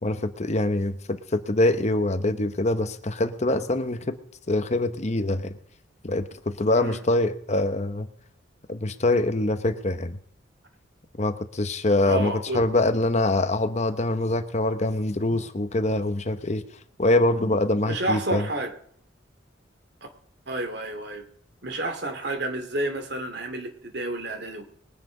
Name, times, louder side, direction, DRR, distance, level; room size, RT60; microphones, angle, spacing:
voice 1, 0.0-4.2 4.5-5.5 6.0-8.1 8.7-10.2 11.2-16.6 17.0-18.4, left 2 dB, 35° left, 0.9 m, -24 dB
voice 2, 12.1-12.6 17.9-18.7 20.5-21.2 21.6-24.6, right 1 dB, 60° right, 2.4 m, -30 dB
21.5 x 10.0 x 3.9 m
head